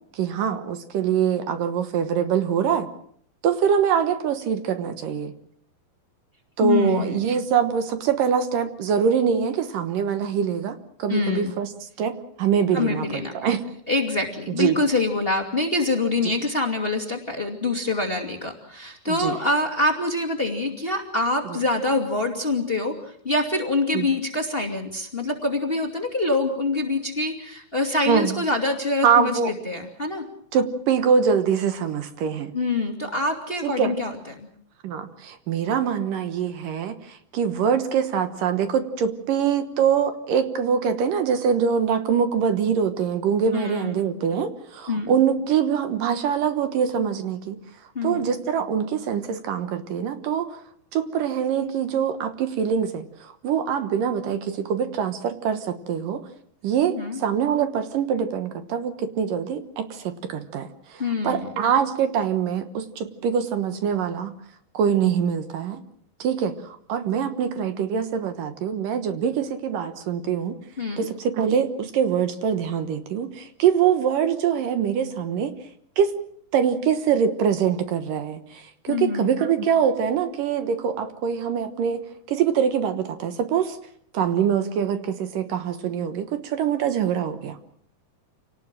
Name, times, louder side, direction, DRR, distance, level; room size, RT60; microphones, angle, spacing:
voice 1, 0.1-2.9 3.4-5.3 6.6-13.6 14.6-14.8 16.2-16.3 19.1-19.4 23.9-24.1 28.1-28.4 29.0-29.5 30.5-32.5 33.6-34.0 34.8-47.6 48.0-50.6 50.9-56.3 56.6-64.3 64.7-65.8 66.2-70.6 71.0-75.5 76.0-76.1 76.5-83.8 84.1-87.6, right 7 dB, 70° right, 9 dB, 2.8 m, -24 dB
voice 2, 6.6-7.2 11.1-11.5 12.7-13.3 13.9-30.2 32.5-34.5 43.5-44.0 44.9-45.1 47.9-48.3 57.0-57.2 61.0-61.5 70.8-71.1 78.9-79.3, left 2 dB, 20° left, 4 dB, 2.2 m, -25 dB
28.0 x 18.5 x 7.5 m, 0.65 s
omnidirectional pair, 4.2 m